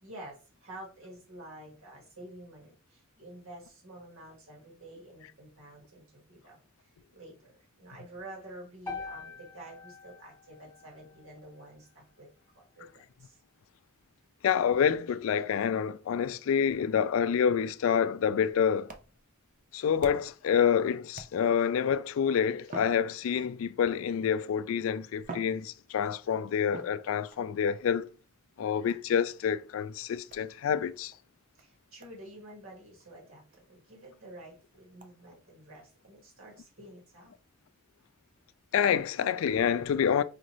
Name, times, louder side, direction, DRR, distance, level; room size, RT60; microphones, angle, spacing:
voice 1, 0.0-6.6 7.1-12.3 12.6-13.4 31.6-37.4, right 1 dB, 75° right, 1.7 m, -49 dB
sound 1, 8.9-13.0, left 4 dB, 10° left, 1.3 m, -46 dB
voice 2, 14.4-18.9 19.7-28.1 28.6-31.1 38.7-40.2, left 7 dB, 70° left, 0.3 m, -27 dB
sound 2, 18.8-20.5 21.1-21.7 22.6-23.7 24.6-24.7 25.2-26.2 26.7-27.5 28.9-29.2 30.3-30.5 31.1-31.2 31.6-31.7 32.0-32.2 32.5-32.6 33.0-33.1 33.5-33.6 34.0-34.1 35.0-35.1, right 3 dB, 40° right, 0.5 m, -47 dB
4.9 x 2.5 x 3.0 m
head